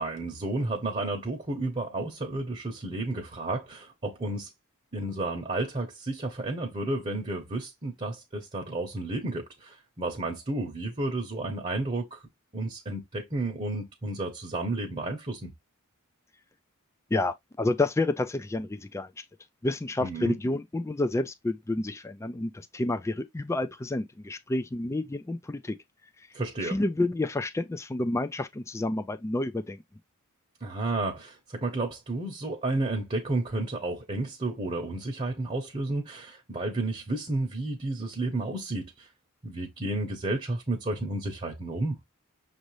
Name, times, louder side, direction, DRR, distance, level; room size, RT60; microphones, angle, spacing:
voice 1, 0.0-4.5 4.9-12.2 12.5-15.5 20.0-20.4 26.3-26.8 30.6-39.1 39.4-42.0, right 2 dB, 30° right, 0.9 m, -32 dB
voice 2, 17.1-19.2 19.6-25.8 26.6-29.8, left 2 dB, 15° left, 0.4 m, -29 dB
6.3 x 2.6 x 3.1 m
head